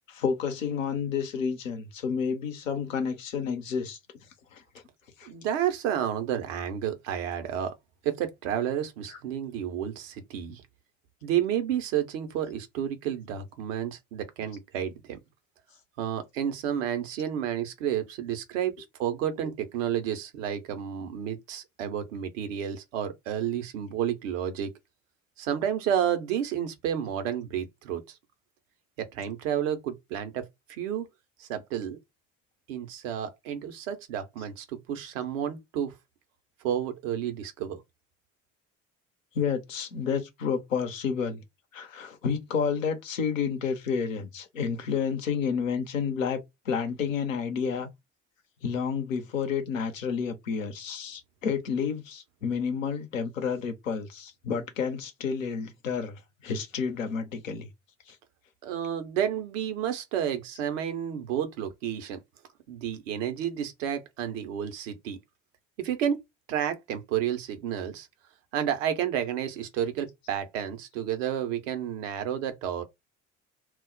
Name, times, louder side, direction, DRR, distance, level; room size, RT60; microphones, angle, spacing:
voice 1, 0.1-4.0 4.5-4.6 5.2-5.3 9.1-9.2 19.4-19.5 39.3-41.4 41.7-46.4 46.6-47.9 48.6-57.7 58.1-58.2, left 6 dB, 85° left, 0.8 m, -30 dB
voice 2, 5.2-7.7 8.0-10.6 11.2-15.2 16.0-24.7 25.4-28.2 29.0-30.4 30.7-31.1 31.4-32.0 32.7-35.9 36.6-37.8 58.6-62.2 62.7-65.2 65.8-66.2 66.5-68.1 68.5-72.8, right 9 dB, 75° right, 0.8 m, -31 dB
2.4 x 2.0 x 3.8 m
hypercardioid pair, 55°, 38 cm